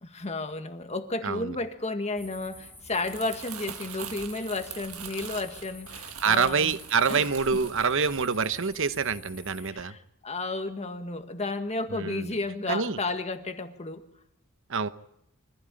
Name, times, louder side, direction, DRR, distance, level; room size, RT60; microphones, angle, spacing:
voice 1, 0.0-6.8 7.1-7.6 9.6-14.0, left 2 dB, 30° left, 8 dB, 1.7 m, -33 dB
voice 2, 1.2-1.5 6.2-9.9 11.9-12.3 12.7-13.0 14.7-14.9, right 5 dB, 65° right, 12 dB, 1.0 m, -26 dB
sound 1, 2.2-9.7, left 1 dB, 10° left, 2.4 m, -49 dB
Crumpling crinkling, 2.8-9.2 9.5-9.8, right 8 dB, 90° right, 1.7 m, -43 dB
24.5 x 15.5 x 8.9 m, 0.81 s
head